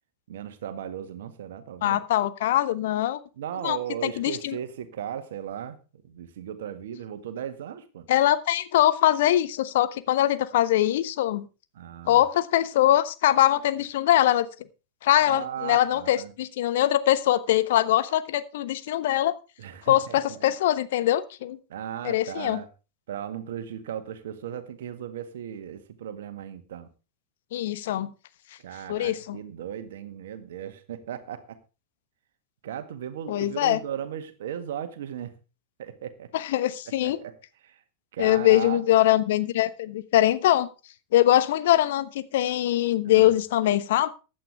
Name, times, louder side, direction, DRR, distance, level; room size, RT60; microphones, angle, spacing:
voice 1, 0.3-2.0 3.4-5.8 6.0-8.1 11.7-12.2 15.3-16.3 19.6-20.5 21.7-22.7 23.1-26.9 28.6-31.6 32.6-35.3 35.8-36.3 36.9-37.4 37.6-37.8 38.1-38.8 43.1-43.3, right 9 dB, 60° right, 10 dB, 1.8 m, -36 dB
voice 2, 1.8-3.2 3.6-3.8 4.2-4.6 8.1-11.5 12.1-14.5 15.0-19.3 19.9-21.6 22.0-22.6 27.5-28.1 28.9-29.4 33.3-33.8 36.3-37.2 38.2-40.7 41.1-44.1, left 13 dB, 55° left, 14 dB, 1.1 m, -22 dB
15.5 x 10.5 x 3.5 m, 0.31 s
figure-of-eight pair, 90°, 0 cm